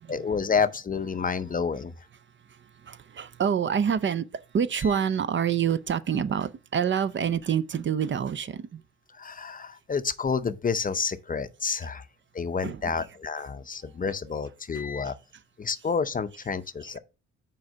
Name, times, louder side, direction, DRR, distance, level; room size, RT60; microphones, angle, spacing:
voice 1, 0.0-2.1 4.8-4.9 9.1-12.1 12.3-15.2 15.6-17.0, left 5 dB, 30° left, 0.6 m, -29 dB
voice 2, 2.5-4.3 4.5-8.8 12.6-13.0 15.1-15.2, right 7 dB, 40° right, 0.5 m, -27 dB
6.2 x 4.5 x 5.0 m
cardioid pair, 90°, 30 cm